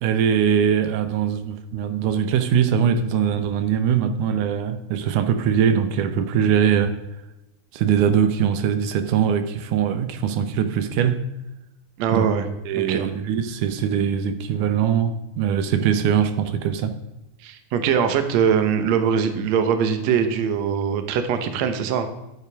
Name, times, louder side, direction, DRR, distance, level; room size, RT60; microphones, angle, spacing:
voice 1, 0.0-6.9 7.7-11.2 12.1-12.3 12.7-16.9, right 8 dB, 85° right, 9 dB, 2.3 m, -21 dB
voice 2, 12.0-12.5 12.7-13.1 17.4-22.1, right 7 dB, 70° right, 8 dB, 2.1 m, -22 dB
12.0 x 9.4 x 3.5 m, 0.93 s
omnidirectional pair, 3.5 m